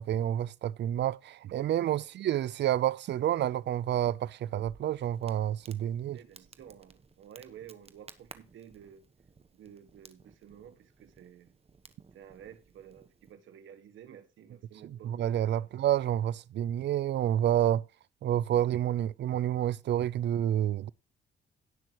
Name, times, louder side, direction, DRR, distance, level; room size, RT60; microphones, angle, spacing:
voice 1, 0.0-6.2 14.8-17.8 18.2-20.9, right 11 dB, 60° right, 0.5 m, -29 dB
Crackle, 4.6-13.3, right 5 dB, 30° right, 1.2 m, -57 dB
voice 2, 6.1-9.0 9.5-11.6 12.1-15.2 15.6-15.7, right 9 dB, 75° right, 1.8 m, -52 dB
17.5 x 6.2 x 3.0 m
cardioid pair, 90°, 20 cm